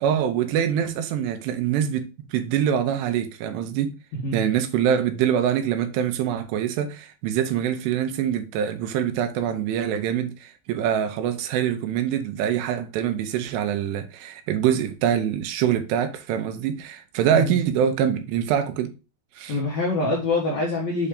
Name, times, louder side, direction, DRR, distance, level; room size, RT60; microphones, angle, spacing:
voice 1, 0.0-3.9 4.3-18.9 19.4-19.5, right 9 dB, 85° right, 2.8 m, -24 dB
voice 2, 19.5-21.1, left 2 dB, 75° left, 1.7 m, -25 dB
7.0 x 2.8 x 5.0 m
omnidirectional pair, 5.0 m